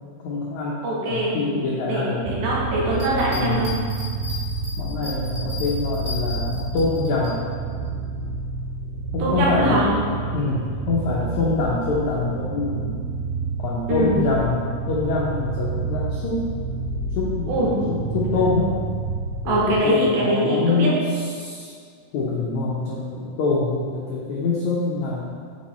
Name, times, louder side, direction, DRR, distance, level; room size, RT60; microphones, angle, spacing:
voice 1, 0.2-2.2 3.3-3.7 4.8-7.5 9.1-9.8 10.3-12.9 13.6-16.4 17.1-18.8 19.4-21.7 22.1-25.2, left 3 dB, 90° left, -5 dB, 1.6 m, -25 dB
voice 2, 0.8-1.4 1.9-3.7 9.2-9.8 13.9-14.2 17.5-17.7 19.5-20.9, right 1 dB, 70° right, -5 dB, 3.0 m, -22 dB
sound 1, 2.2-19.8, right 3 dB, 85° right, 2.7 m, -29 dB
sound 2, 2.9-7.3, left 4 dB, 45° right, 0.6 m, -36 dB
9.0 x 4.7 x 4.3 m, 2.1 s
omnidirectional pair, 4.6 m